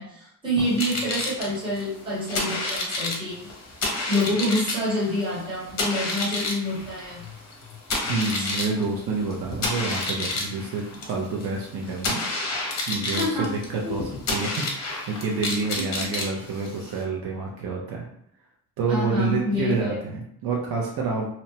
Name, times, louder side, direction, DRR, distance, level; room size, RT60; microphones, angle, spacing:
voice 1, 0.0-3.5 4.1-7.3 8.0-8.5 13.1-13.5 13.8-13.9 15.6-16.1 18.9-20.0, left 1 dB, 15° right, -8 dB, 0.8 m, -27 dB
sound 1, 0.6-17.0, left 2 dB, 45° left, 0.6 m, -30 dB
voice 2, 8.1-12.2 12.9-18.1 18.8-21.3, right 4 dB, 65° right, -2 dB, 0.5 m, -28 dB
2.8 x 2.0 x 2.7 m, 0.73 s
wide cardioid pair, 180°, 39 cm